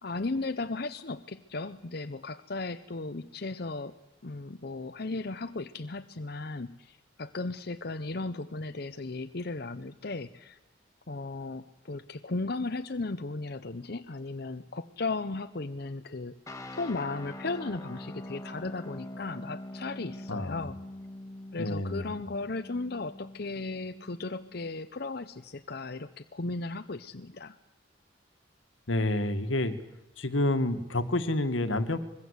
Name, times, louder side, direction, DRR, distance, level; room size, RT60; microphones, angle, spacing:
voice 1, 0.0-4.0 4.2-10.6 11.1-20.8 21.5-27.6, left 3 dB, 55° left, 9 dB, 0.8 m, -36 dB
sound 1, 16.5-24.7, left 1 dB, 15° left, 2.0 m, -44 dB
voice 2, 21.6-22.2 28.9-29.8 30.2-32.0, left 1 dB, 90° left, 9 dB, 1.9 m, -28 dB
25.0 x 21.5 x 8.2 m, 0.94 s
head